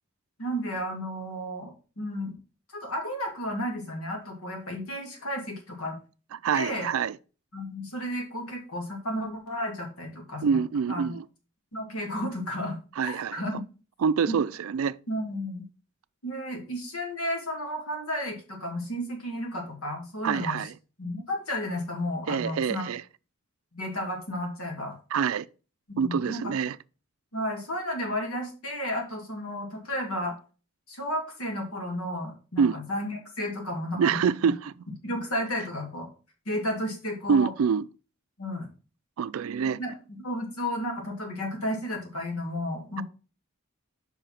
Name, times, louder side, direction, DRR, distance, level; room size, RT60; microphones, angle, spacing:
voice 1, 0.4-2.3 2.7-5.9 6.5-6.9 7.5-10.6 10.9-11.2 11.7-13.6 14.3-14.4 15.1-15.6 16.2-20.7 21.0-22.9 23.7-25.0 25.9-26.5 27.3-30.4 30.9-34.2 35.0-36.1 36.5-37.5 38.4-38.7 39.8-43.0, equal, 85° left, 2.5 m, -33 dB
voice 2, 6.3-7.2 10.4-11.2 13.0-13.4 14.0-15.0 20.2-20.7 22.3-23.0 25.1-25.5 26.0-26.8 32.6-32.8 33.9-34.7 37.3-37.9 39.2-39.8, right 6 dB, 75° right, 0.4 m, -26 dB
5.5 x 4.9 x 5.7 m
head